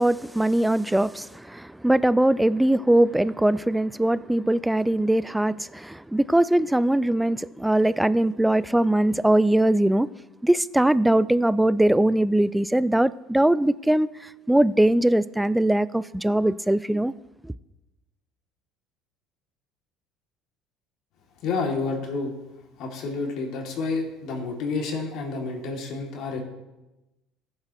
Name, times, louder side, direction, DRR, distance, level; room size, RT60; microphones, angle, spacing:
voice 1, 0.0-10.1 10.4-14.1 14.5-17.1, right 1 dB, 5° right, 0.3 m, -21 dB
voice 2, 21.4-22.3 22.8-26.4, left 4 dB, 60° left, 2.5 m, -29 dB
14.5 x 7.5 x 3.0 m
supercardioid pair, 80°, 0 cm